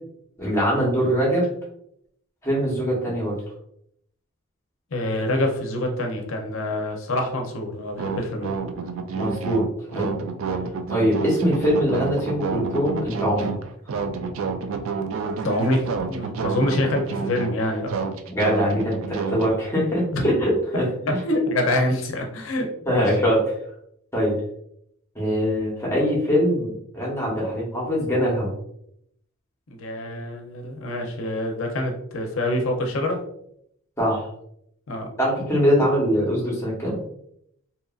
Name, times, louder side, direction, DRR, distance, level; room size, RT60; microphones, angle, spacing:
voice 1, 0.4-1.5 2.4-3.4 9.1-9.6 9.9-10.1 10.9-13.5 18.3-21.2 22.8-23.5 24.1-24.4 25.1-28.5 34.0-34.3 35.2-37.0, equal, 15° left, -5 dB, 0.9 m, -22 dB
voice 2, 4.9-8.5 15.4-17.9 20.1-20.3 21.1-22.7 22.9-23.0 29.7-33.2 34.9-35.1, left 1 dB, 70° left, 2 dB, 0.6 m, -26 dB
sound 1, 8.0-19.5, right 5 dB, 70° right, 0.3 m, -29 dB
2.8 x 2.4 x 2.3 m, 0.73 s
head